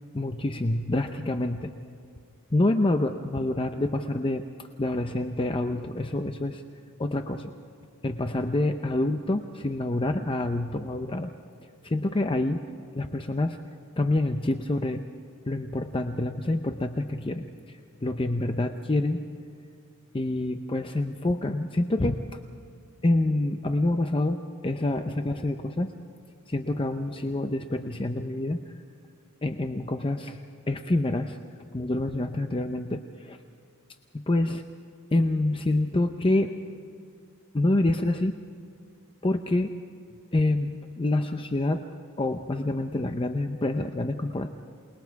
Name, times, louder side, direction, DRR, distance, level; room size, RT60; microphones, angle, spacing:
voice 1, 0.1-1.7 2.5-4.4 4.8-6.6 7.0-7.5 8.0-11.3 11.8-12.6 13.0-13.6 14.0-15.0 15.5-19.2 20.1-22.2 23.0-24.4 24.6-25.9 26.5-28.6 29.4-30.4 30.7-31.4 31.7-33.4 34.1-34.6 35.1-36.5 37.5-38.3 39.2-39.7 40.3-41.8 42.2-44.5, left 2 dB, 25° left, 6 dB, 0.7 m, -27 dB
28.0 x 20.5 x 4.7 m, 2.5 s
head